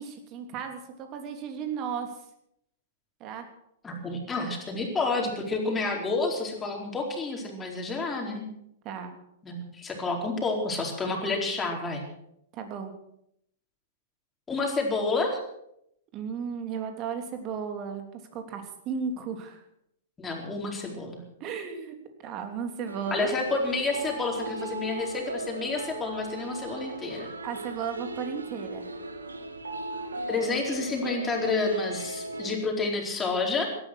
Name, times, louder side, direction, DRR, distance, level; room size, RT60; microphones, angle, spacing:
voice 1, 0.0-2.1 3.2-3.5 8.8-9.1 12.5-12.9 16.1-19.6 21.4-22.0 22.2-23.3 26.9-27.0 27.4-28.9, right 6 dB, 35° right, 6 dB, 3.1 m, -35 dB
voice 2, 3.8-8.5 9.4-12.0 14.5-15.4 20.2-21.2 23.1-27.3 30.3-33.7, left 3 dB, 15° left, 1 dB, 4.4 m, -29 dB
sound 1, 22.9-32.6, right 2 dB, 85° right, 1.7 m, -37 dB
17.5 x 13.0 x 6.3 m, 0.76 s
figure-of-eight pair, 105°, 0 cm